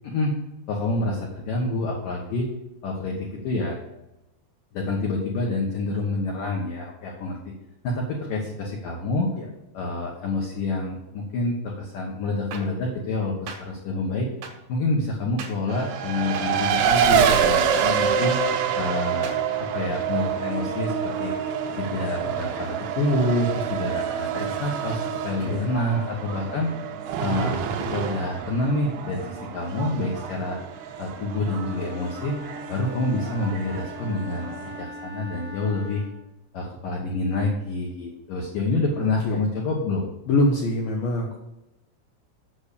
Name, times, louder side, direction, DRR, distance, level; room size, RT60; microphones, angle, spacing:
voice 1, 0.0-0.3 0.7-2.5 2.8-3.8 4.7-7.5 7.8-9.3 9.7-14.3 14.7-18.4 18.7-19.3 19.6-21.3 21.7-26.7 27.2-30.6 31.0-32.4 32.7-36.0 36.5-40.1, left 2 dB, 70° left, -1 dB, 2.1 m, -27 dB
sound 1, 12.5-12.6 13.5-13.6 14.4-14.5 15.4-15.5 16.3-16.4 17.3-17.4 18.3-18.4 19.2-19.4, right 6 dB, 65° right, 2.4 m, -36 dB
Race car auto racing, 15.7-34.8, right 7 dB, 85° right, 2.3 m, -27 dB
voice 2, 25.4-26.1 39.2-39.4 40.3-41.4, left 2 dB, 90° left, 1 dB, 2.1 m, -25 dB
Wind instrument woodwind instrument, 31.5-36.3, left 1 dB, 40° right, 0.8 m, -40 dB
8.1 x 6.8 x 6.7 m, 0.95 s
omnidirectional pair, 5.8 m